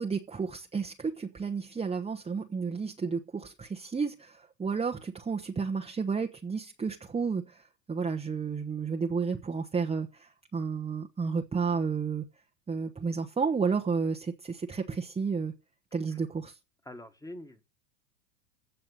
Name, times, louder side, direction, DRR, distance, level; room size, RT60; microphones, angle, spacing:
voice 1, 0.0-12.3 12.7-15.5 15.9-16.6, right 5 dB, 10° right, 1.1 m, -32 dB
voice 2, 16.9-17.6, left 1 dB, 5° left, 1.8 m, -44 dB
16.0 x 5.8 x 6.7 m
hypercardioid pair, 105°, 48 cm